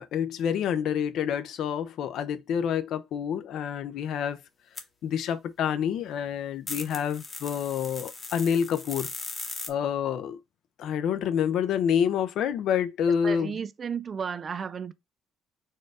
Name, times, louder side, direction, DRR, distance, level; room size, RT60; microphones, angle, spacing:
voice 1, 0.0-4.4 5.0-9.1 9.7-10.4 10.8-13.6, left 8 dB, 65° left, 0.6 m, -28 dB
sound 1, 4.8-4.9 6.7-9.7, left 3 dB, 25° left, 0.9 m, -38 dB
voice 2, 13.2-14.9, right 6 dB, 35° right, 0.4 m, -33 dB
4.5 x 2.4 x 4.7 m
cardioid pair, 120°, 0 cm